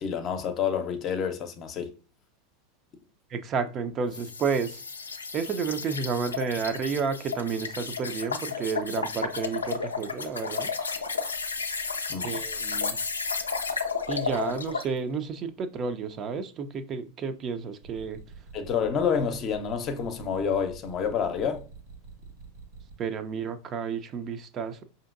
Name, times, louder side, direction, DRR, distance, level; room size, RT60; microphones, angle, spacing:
voice 1, 0.0-1.9 12.1-12.3 18.5-21.6, left 7 dB, 40° left, 0.6 m, -28 dB
voice 2, 3.3-4.8 5.3-10.7 12.2-13.0 14.1-18.2 23.0-24.8, right 5 dB, 35° right, 0.4 m, -31 dB
sound 1, 4.1-14.9, left 5 dB, 90° left, 0.4 m, -33 dB
sound 2, 17.8-22.9, right 5 dB, 80° right, 1.3 m, -46 dB
4.9 x 2.7 x 2.4 m
hypercardioid pair, 90°, 0 cm